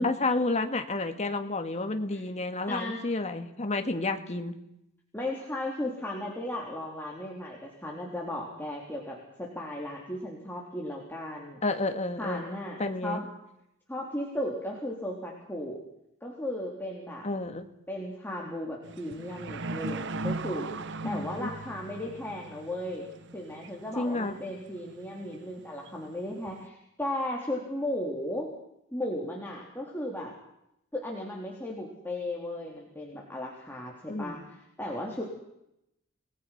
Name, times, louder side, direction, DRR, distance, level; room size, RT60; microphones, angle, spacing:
voice 1, 0.0-4.6 11.6-13.2 17.2-17.7 21.0-21.5 24.0-24.3 34.1-34.4, left 2 dB, 35° left, 7 dB, 2.0 m, -30 dB
voice 2, 2.7-3.0 5.1-11.6 12.2-13.2 13.9-15.8 16.2-17.3 17.9-20.7 21.0-23.0 23.3-28.5 28.9-30.3 30.9-35.2, left 1 dB, 10° left, -3 dB, 3.8 m, -35 dB
sound 1, 18.8-26.7, right 2 dB, 60° right, 1.1 m, -39 dB
29.0 x 20.0 x 6.1 m, 0.81 s
head